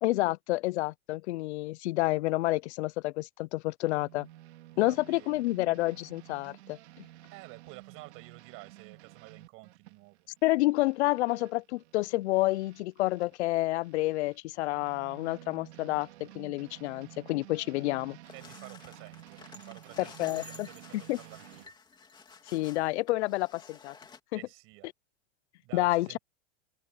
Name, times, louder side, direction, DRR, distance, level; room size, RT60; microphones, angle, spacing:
voice 1, 0.0-4.3 4.8-7.1 10.4-18.2 20.0-20.7 20.9-21.2 22.5-23.9 24.3-24.4 25.7-26.2, left 19 dB, 90° left, 0.5 m, -29 dB
sound 1, 3.9-13.4 13.8-21.7, right 15 dB, 85° right, 2.6 m, -52 dB
voice 2, 4.7-5.5 7.3-10.3 18.3-21.7 24.3-24.9 25.6-26.2, right 24 dB, 40° right, 7.9 m, -51 dB
sound 2, 18.2-24.2, left 4 dB, 15° left, 3.1 m, -52 dB
supercardioid pair, 165°, 33 cm